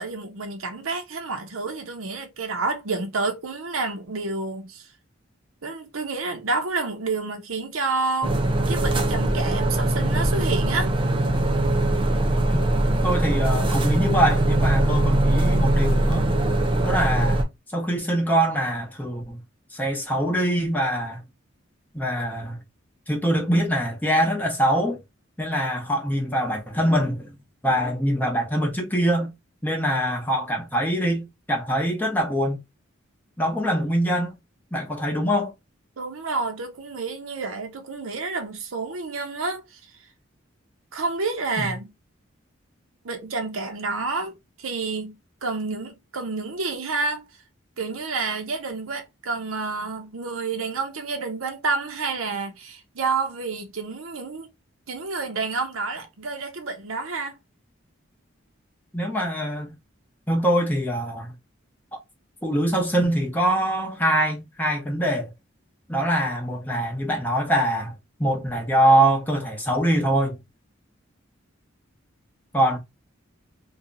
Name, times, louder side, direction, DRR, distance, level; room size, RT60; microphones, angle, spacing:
voice 1, 0.0-4.9 5.6-8.3 8.7-10.9 36.0-39.9 40.9-41.9 43.0-45.2 45.4-47.3 47.8-54.5 54.9-57.4, right 3 dB, 85° right, 0.8 m, -29 dB
sound 1, 8.2-17.4, right 1 dB, 25° right, 0.5 m, -21 dB
voice 2, 13.0-16.3 16.8-17.4 17.7-19.4 19.7-21.2 21.9-22.6 23.1-25.0 25.4-27.3 27.6-29.3 29.6-32.6 33.4-34.4 34.7-35.5 58.9-59.7 60.3-61.3 62.4-65.3 65.9-70.4 72.5-72.8, right 1 dB, 10° left, 0.8 m, -23 dB
2.8 x 2.3 x 3.8 m
head